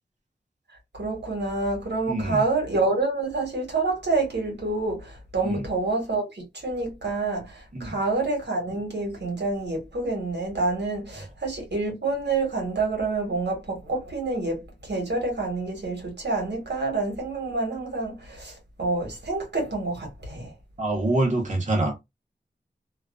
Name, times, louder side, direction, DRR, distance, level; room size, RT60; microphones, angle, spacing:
voice 1, 1.0-18.5 18.8-20.5, right 3 dB, 75° right, 1.2 m, -27 dB
voice 2, 2.0-2.5 5.4-5.7 7.7-8.0 11.1-11.3 20.8-22.0, right 2 dB, 45° right, 0.9 m, -26 dB
2.3 x 2.3 x 2.3 m
wide cardioid pair, 50°, 18 cm